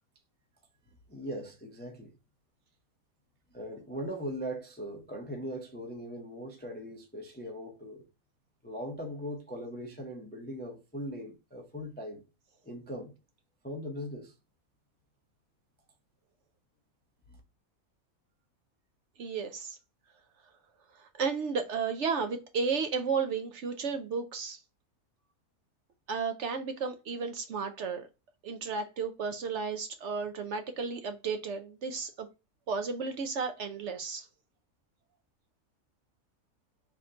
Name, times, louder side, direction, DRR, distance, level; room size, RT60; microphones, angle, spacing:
voice 1, 1.1-2.1 3.5-8.0 8.6-12.2 12.7-13.1 13.6-14.3, equal, 15° left, 0.3 m, -40 dB
voice 2, 19.2-19.8 21.2-24.6 26.1-28.1 28.4-32.3 32.7-34.3, right 5 dB, 65° right, 0.8 m, -33 dB
3.5 x 2.5 x 4.3 m
omnidirectional pair, 1.5 m